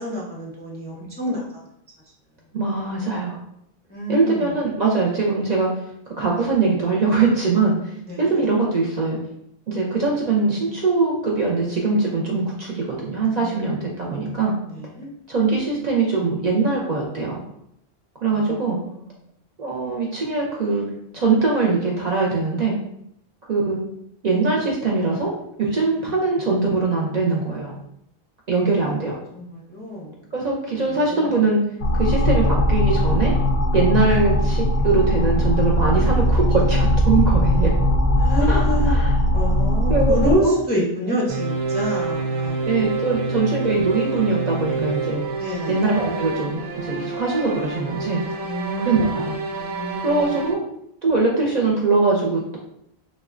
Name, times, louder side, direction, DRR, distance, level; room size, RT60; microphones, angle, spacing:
voice 1, 0.0-1.4 3.9-4.6 8.0-8.5 13.4-13.5 14.7-15.1 18.3-18.6 18.8-19.1 29.3-30.2 30.9-31.4 38.2-39.1 39.3-42.9 45.4-45.8 48.4-49.2 49.5-50.3, equal, 15° left, -4 dB, 0.4 m, -28 dB
voice 2, 2.5-3.4 4.1-5.7 6.1-9.2 9.7-14.5 15.3-17.4 18.2-18.8 19.6-20.8 21.1-22.8 23.5-23.8 24.2-25.3 25.6-27.8 28.5-29.2 30.3-31.6 31.9-33.3 33.7-37.7 38.5-39.1 39.9-40.6 42.6-45.2 45.7-48.2 48.8-49.4 50.0-50.6 51.0-52.6, right 3 dB, 55° right, -3 dB, 0.5 m, -22 dB
sound 1, 31.8-40.4, equal, 60° left, 0.6 m, -19 dB
sound 2, 41.3-50.5, right 4 dB, 90° right, 0.8 m, -27 dB
3.5 x 2.1 x 2.4 m, 0.76 s
omnidirectional pair, 1.0 m